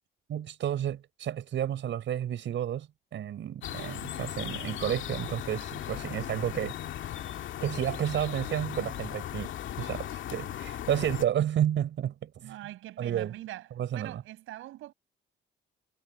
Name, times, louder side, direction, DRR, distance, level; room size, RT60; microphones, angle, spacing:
voice 1, 0.3-2.9 3.1-6.7 7.6-12.5 13.0-13.3 13.8-14.2, right 10 dB, 70° right, 6.7 m, -31 dB
sound 1, 3.6-11.3, left 11 dB, 75° left, 2.1 m, -37 dB
voice 2, 12.4-14.9, right 15 dB, 90° right, 7.6 m, -43 dB
cardioid pair, 90°, 20 cm